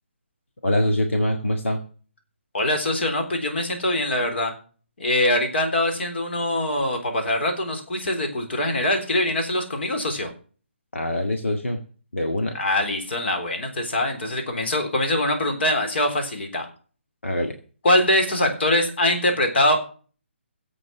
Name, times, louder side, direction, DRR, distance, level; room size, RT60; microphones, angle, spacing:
voice 1, 0.6-1.8 10.9-11.8 12.1-12.6 17.2-17.5, left 1 dB, 85° left, 4 dB, 2.0 m, -24 dB
voice 2, 2.5-4.5 5.0-10.3 12.5-16.7 17.8-19.9, left 1 dB, 60° left, 5 dB, 3.7 m, -23 dB
16.0 x 8.2 x 5.9 m, 0.40 s
figure-of-eight pair, 150°, 7 cm